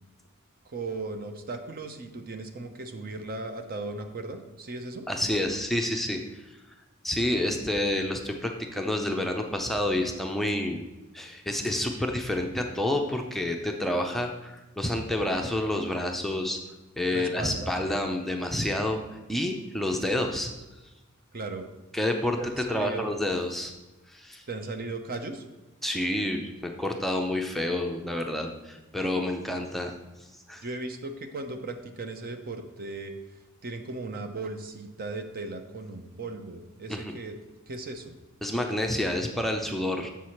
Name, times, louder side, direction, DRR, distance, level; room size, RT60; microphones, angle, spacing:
voice 1, 0.6-5.0 7.6-7.7 17.1-17.7 21.3-21.7 22.4-23.2 24.5-25.4 30.6-33.1 33.6-37.4 37.7-38.1, right 3 dB, 45° right, 7 dB, 0.7 m, -37 dB
voice 2, 5.1-6.4 7.0-10.8 11.1-16.6 17.0-19.0 19.3-20.5 21.9-22.4 22.7-23.7 24.1-24.4 25.8-29.9 30.5-30.6 36.9-37.1 38.4-40.1, left 1 dB, ahead, 2 dB, 0.5 m, -29 dB
7.0 x 4.7 x 5.7 m, 1.1 s
head